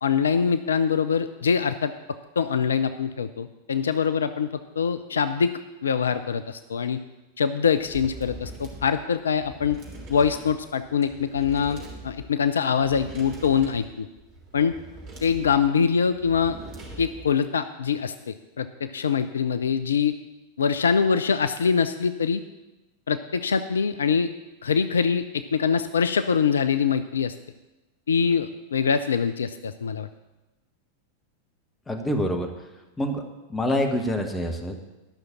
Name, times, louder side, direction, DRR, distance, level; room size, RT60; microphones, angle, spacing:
voice 1, 0.0-1.9 2.4-4.5 4.8-5.5 5.8-7.0 7.4-9.8 10.1-14.1 14.5-14.7 15.2-16.6 17.0-20.1 20.6-22.4 23.1-24.3 24.6-27.3 28.1-30.1, left 6 dB, 70° left, 11 dB, 0.4 m, -24 dB
sound 1, 7.8-17.4, right 2 dB, 30° right, 3.3 m, -42 dB
voice 2, 31.9-32.5 33.0-33.2 33.5-34.8, equal, 10° left, 3 dB, 1.5 m, -26 dB
11.5 x 6.3 x 7.2 m, 1.1 s
figure-of-eight pair, 90°, 0 cm